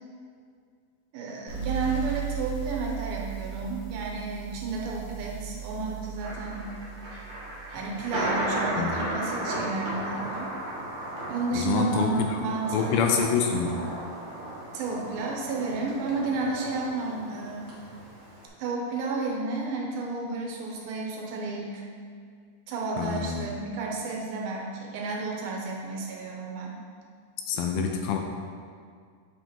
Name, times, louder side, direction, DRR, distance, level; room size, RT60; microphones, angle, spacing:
voice 1, 1.1-6.7 7.1-7.2 7.7-10.5 11.3-13.0 14.7-17.7 18.6-21.8 22.7-26.7, right 3 dB, 75° right, -2 dB, 2.4 m, -32 dB
sound 1, 1.5-8.7, right 10 dB, 50° left, 1.2 m, -37 dB
Thunder, 6.2-18.5, right 1 dB, 50° right, 1.4 m, -35 dB
voice 2, 11.5-12.4 12.7-13.9 23.0-23.5 27.5-28.2, left 6 dB, 85° left, 3 dB, 2.4 m, -26 dB
8.1 x 5.3 x 2.9 m, 2.1 s
omnidirectional pair, 4.6 m